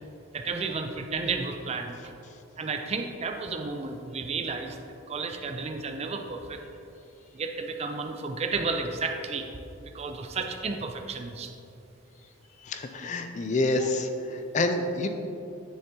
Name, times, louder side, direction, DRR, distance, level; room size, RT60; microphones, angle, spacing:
voice 1, 0.3-2.1 2.6-4.8 5.1-6.6 7.3-9.5 9.8-11.5 13.8-13.9, right 4 dB, 30° right, 5 dB, 0.4 m, -32 dB
voice 2, 12.6-15.1, left 2 dB, 35° left, 7 dB, 0.4 m, -28 dB
9.4 x 6.9 x 2.8 m, 2.8 s
head